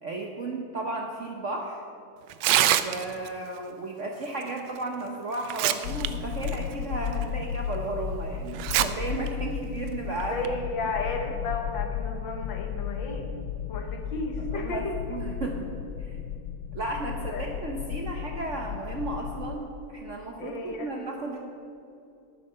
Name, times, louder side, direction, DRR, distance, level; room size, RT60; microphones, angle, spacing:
voice 1, 0.0-1.8 2.6-10.4 10.8-10.9 14.5-15.7 16.0-16.2 16.7-21.4, right 2 dB, 55° right, 1 dB, 0.9 m, -34 dB
Tearing, 2.3-3.3 4.8-4.9 5.3-6.1 6.4-6.5 7.2-7.3 8.5-8.9 9.3-9.4 10.2-10.5, right 13 dB, 75° right, 1.0 m, -24 dB
sound 1, 5.8-19.6, left 9 dB, 90° left, 1.5 m, -34 dB
voice 2, 10.1-13.3 13.7-15.0 17.3-17.5 20.4-20.9, left 3 dB, 65° left, 3 dB, 1.9 m, -33 dB
11.5 x 9.3 x 5.5 m, 2.6 s
omnidirectional pair, 2.3 m